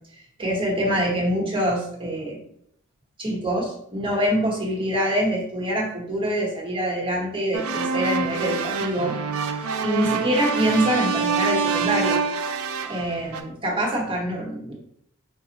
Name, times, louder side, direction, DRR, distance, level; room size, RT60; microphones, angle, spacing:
voice 1, 0.1-2.4 3.2-9.1 9.8-12.2 12.9-14.7, equal, 25° right, -3 dB, 1.0 m, -25 dB
sound 1, 7.5-13.4, right 5 dB, 80° right, 0.4 m, -26 dB
5.0 x 2.3 x 2.8 m, 0.69 s
head